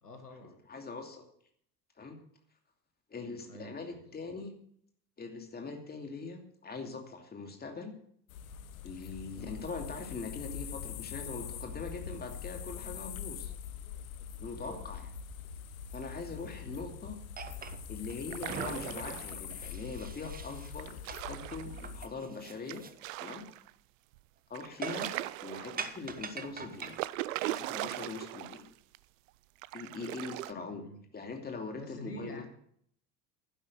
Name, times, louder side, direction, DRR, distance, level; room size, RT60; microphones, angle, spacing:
voice 1, 0.0-0.6 3.5-4.3 9.3-9.7 14.5-14.8 30.7-31.0 31.7-32.5, equal, 85° left, 6 dB, 1.6 m, -47 dB
voice 2, 0.7-1.2 2.0-2.2 3.1-4.5 5.2-7.9 8.8-13.5 14.4-15.0 15.9-17.2 17.9-21.0 21.3-22.9 23.2-23.4 24.5-25.1 25.4-27.0 27.3-28.6 29.7-30.8 31.1-32.5, left 4 dB, 20° left, 4 dB, 2.7 m, -42 dB
sound 1, 8.3-22.1, left 8 dB, 65° left, 1.2 m, -43 dB
sound 2, 17.4-18.2 18.4-20.7 21.1-21.2 21.5-22.9 23.2-23.3 24.8-25.3 25.8-27.0, right 6 dB, 20° right, 1.1 m, -43 dB
sound 3, 18.2-19.5 20.8-21.9 22.7-23.7 24.1-24.2 24.5-26.1 26.7-28.7 28.9-29.0 29.6-30.5, right 17 dB, 60° right, 0.6 m, -39 dB
11.5 x 10.5 x 6.5 m, 0.65 s
figure-of-eight pair, 70°, 45 cm